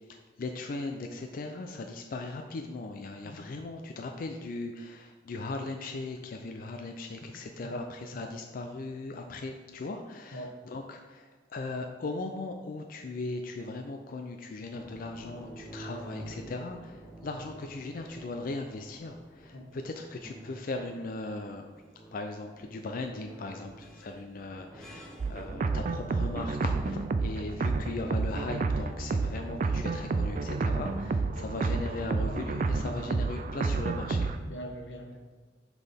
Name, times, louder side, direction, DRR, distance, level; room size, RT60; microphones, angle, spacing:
voice 1, 0.1-21.7 22.1-34.3, left 2 dB, 55° left, 4 dB, 0.4 m, -38 dB
sound 1, 14.7-34.1, right 1 dB, 5° left, 0.9 m, -49 dB
sound 2, 25.2-34.4, right 3 dB, 45° right, 0.3 m, -30 dB
voice 2, 34.4-35.4, equal, 90° left, 3 dB, 0.9 m, -41 dB
6.0 x 5.5 x 3.5 m, 1.4 s
head